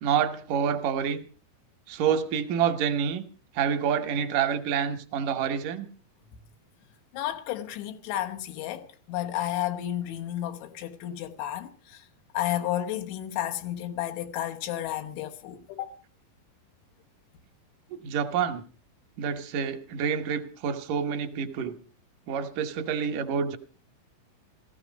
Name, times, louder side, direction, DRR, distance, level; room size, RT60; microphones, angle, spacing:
voice 1, 0.0-1.2 1.9-3.3 3.5-5.9 17.9-18.6 19.2-21.8 22.3-23.6, right 7 dB, 70° right, 2.0 m, -27 dB
voice 2, 7.1-12.1 12.3-15.9, left 12 dB, 85° left, 3.4 m, -32 dB
16.5 x 14.0 x 5.2 m
omnidirectional pair, 5.2 m